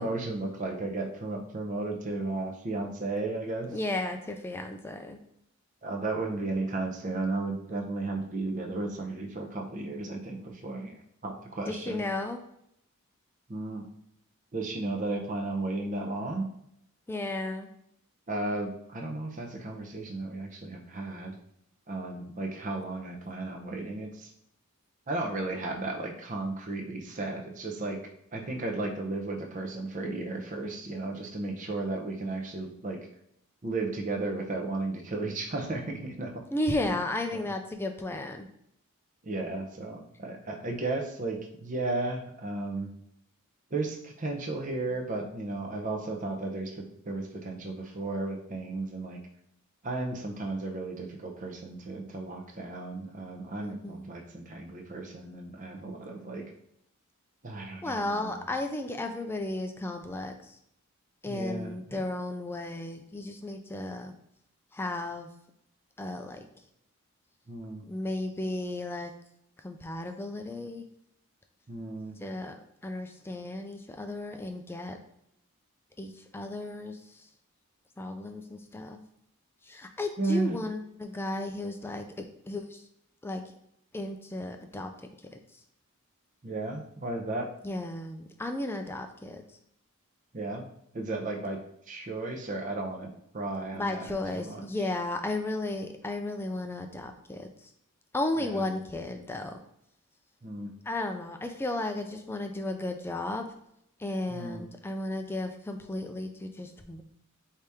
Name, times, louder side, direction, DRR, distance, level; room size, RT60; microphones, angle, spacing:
voice 1, 0.0-3.7 5.8-12.0 13.5-13.8 14.5-16.4 18.3-21.4 21.9-24.3 25.1-28.0 28.3-33.0 33.6-36.5 36.9-37.0 37.3-37.5 39.2-42.9 43.7-49.2 49.8-56.4 57.4-58.3 61.3-62.0 67.5-67.8 71.7-72.2 80.2-80.6 86.4-87.5 90.3-90.7 90.9-91.6 91.9-94.6 98.4-98.6 100.4-100.7 104.3-104.7, right 2 dB, 35° right, 2 dB, 0.6 m, -34 dB
voice 2, 3.7-5.2 11.7-12.4 17.1-17.7 36.5-38.5 53.6-54.1 57.8-60.6 61.2-64.1 64.7-65.3 66.0-66.5 67.9-69.1 69.6-70.8 72.2-75.0 76.0-77.3 78.0-79.0 79.6-82.8 83.2-83.4 83.9-84.9 85.3-85.4 87.6-89.4 93.7-97.7 98.1-99.6 100.9-103.5 104.0-107.0, left 2 dB, 10° left, 6 dB, 0.3 m, -34 dB
4.8 x 2.8 x 3.4 m, 0.75 s
head